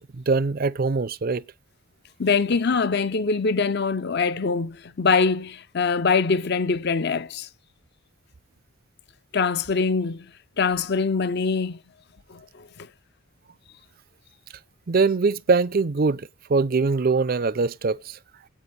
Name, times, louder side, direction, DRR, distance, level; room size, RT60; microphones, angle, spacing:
voice 1, 0.2-1.4 14.9-18.2, right 4 dB, 40° right, 0.5 m, -22 dB
voice 2, 2.2-7.5 9.3-10.3 10.6-11.8 12.3-12.7, left 4 dB, 50° left, 0.6 m, -23 dB
14.5 x 8.6 x 3.3 m
head